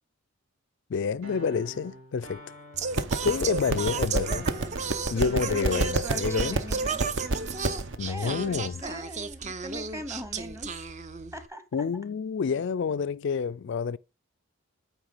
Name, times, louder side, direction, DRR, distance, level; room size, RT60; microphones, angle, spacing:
voice 1, 0.9-2.4 3.2-4.5 5.1-6.6 8.0-8.7 11.7-14.0, left 6 dB, 50° left, 0.3 m, -28 dB
sound 1, 1.2-9.1, equal, 80° right, 3.7 m, -46 dB
Singing, 2.7-11.5, right 5 dB, 30° right, 0.5 m, -34 dB
sound 2, 2.9-8.0, right 2 dB, 55° right, 0.8 m, -29 dB
voice 2, 5.1-7.0 7.5-7.7 8.1-10.9 11.3-11.6, right 1 dB, 10° right, 0.9 m, -40 dB
8.9 x 3.6 x 6.6 m
head